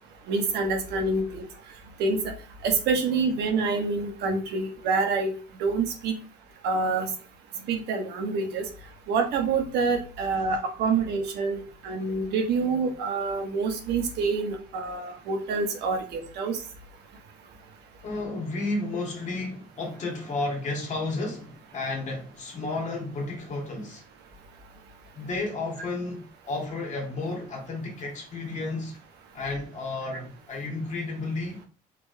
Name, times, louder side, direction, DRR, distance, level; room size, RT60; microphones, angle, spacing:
voice 1, 0.3-1.5 2.0-2.3 2.6-5.3 5.6-6.2 6.6-7.1 7.7-8.7 9.1-16.6, right 4 dB, 80° right, 1.1 m, -27 dB
voice 2, 18.0-24.0 25.1-29.0 29.3-31.6, left 2 dB, 45° left, 1.7 m, -32 dB
4.4 x 3.2 x 2.6 m
cardioid pair, 110°, 17 cm